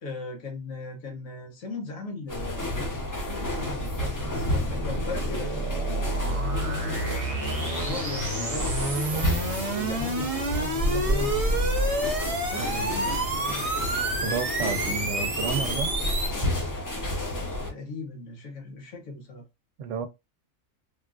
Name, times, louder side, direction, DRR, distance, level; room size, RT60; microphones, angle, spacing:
voice 1, 0.0-2.6 3.2-7.2 7.8-9.3 9.7-11.6 12.4-13.7 17.7-19.4, left 3 dB, 90° left, 1.4 m, -38 dB
sound 1, 2.3-17.7, left 1 dB, 30° left, 0.4 m, -30 dB
sound 2, 2.3-16.3, right 2 dB, 35° right, 0.7 m, -30 dB
voice 2, 14.2-15.9 19.8-20.1, right 5 dB, 70° right, 0.9 m, -31 dB
3.5 x 2.4 x 2.3 m
omnidirectional pair, 1.4 m